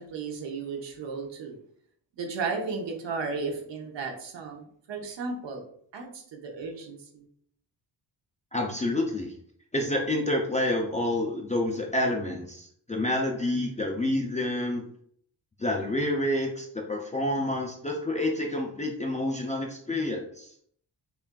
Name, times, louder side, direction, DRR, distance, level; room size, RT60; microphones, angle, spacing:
voice 1, 0.0-1.6 2.2-5.6 5.9-7.2, right 4 dB, 75° right, 2 dB, 0.9 m, -34 dB
voice 2, 8.5-9.3 9.7-14.8 15.6-20.5, left 1 dB, 20° left, 0 dB, 0.4 m, -28 dB
5.6 x 2.5 x 2.2 m, 0.64 s
wide cardioid pair, 135°, 44 cm